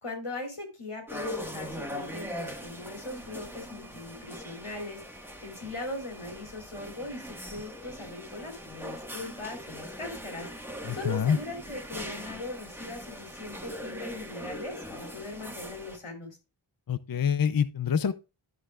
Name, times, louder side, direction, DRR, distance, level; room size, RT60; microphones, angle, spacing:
voice 1, 0.0-10.5 10.9-16.4, left 2 dB, 85° left, 3.3 m, -40 dB
sound 1, 1.1-16.0, equal, 5° right, 1.6 m, -41 dB
voice 2, 10.8-11.4 16.9-18.1, left 7 dB, 45° left, 0.5 m, -26 dB
11.0 x 6.4 x 2.4 m
wide cardioid pair, 40°, 50 cm